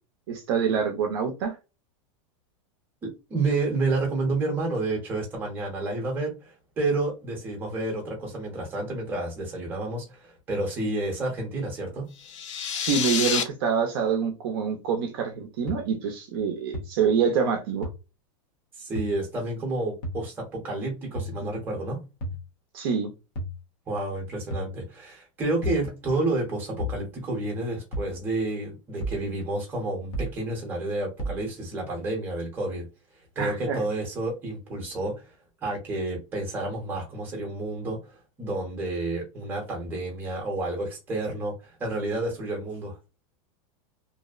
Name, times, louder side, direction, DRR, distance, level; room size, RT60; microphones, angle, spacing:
voice 1, 0.3-1.6 12.8-17.9 22.7-23.1 33.4-33.8, right 6 dB, 45° right, 0.6 m, -26 dB
voice 2, 3.0-12.1 18.8-22.0 23.9-32.9 33.3-35.3 35.6-43.0, right 2 dB, 10° right, 0.8 m, -30 dB
sound 1, 12.2-13.4, left 8 dB, 65° left, 0.5 m, -28 dB
sound 2, 15.7-15.8 16.7-16.8 17.8-17.9 19.0-19.1 20.0-20.2 21.2-21.4 22.2-22.4 23.4-23.6 24.5-24.7 25.6-25.9 26.8-27.0 27.9-28.1 29.0-29.2 30.1-30.4 31.2-31.4, equal, 30° left, 0.7 m, -31 dB
2.6 x 2.0 x 2.3 m
supercardioid pair, 170°, 17 cm